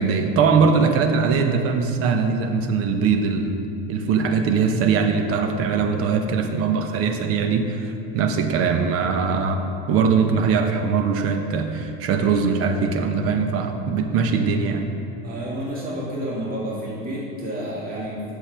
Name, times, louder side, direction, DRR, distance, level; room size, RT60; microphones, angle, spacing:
voice 1, 0.0-3.6 3.9-14.8, right 5 dB, 50° right, 5 dB, 0.9 m, -21 dB
voice 2, 15.2-18.2, equal, 30° right, -5 dB, 1.9 m, -30 dB
8.6 x 6.7 x 4.5 m, 2.6 s
supercardioid pair, 120°, 30 cm